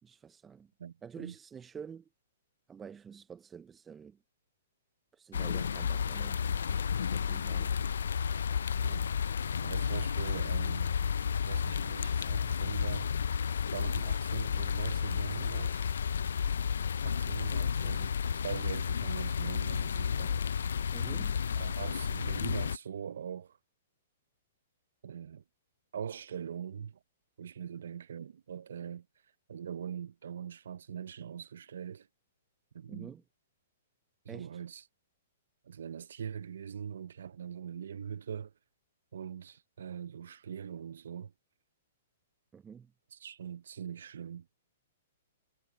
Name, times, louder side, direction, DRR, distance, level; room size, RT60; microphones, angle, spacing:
voice 1, 0.0-0.7 1.0-2.1 2.7-4.2 5.1-6.8 7.1-7.8 20.9-21.4 32.9-33.2 34.3-34.5 42.5-42.9, right 7 dB, 15° right, 0.5 m, -48 dB
voice 2, 0.8-1.3 8.8-9.1 9.6-10.9 11.5-13.3 13.7-15.9 17.0-18.1 18.4-20.5 21.6-23.6 25.0-25.4 25.9-27.0 27.4-29.1 29.5-32.1 32.7-33.1 34.2-34.8 35.6-38.5 39.1-41.3 43.1-44.5, right 8 dB, 75° right, 0.5 m, -42 dB
sound 1, 5.3-22.8, left 7 dB, 80° left, 0.3 m, -32 dB
sound 2, 6.9-16.2, left 37 dB, 40° left, 4.2 m, -53 dB
hypercardioid pair, 135°, 0 cm